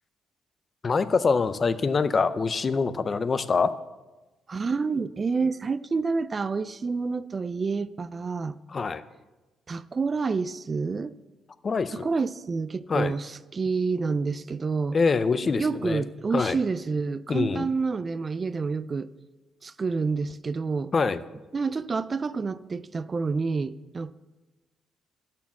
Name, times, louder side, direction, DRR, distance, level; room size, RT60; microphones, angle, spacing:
voice 1, 0.8-3.7 8.7-9.0 11.6-12.1 12.9-13.1 14.9-16.0 16.3-16.6 17.3-17.7 20.9-21.2, left 4 dB, 40° left, 0.5 m, -24 dB
voice 2, 4.5-8.6 9.7-11.2 11.9-15.0 15.6-19.1 19.6-20.9 21.5-24.1, right 4 dB, 35° right, 0.4 m, -28 dB
12.0 x 4.4 x 7.2 m
cardioid pair, 90°, 0 cm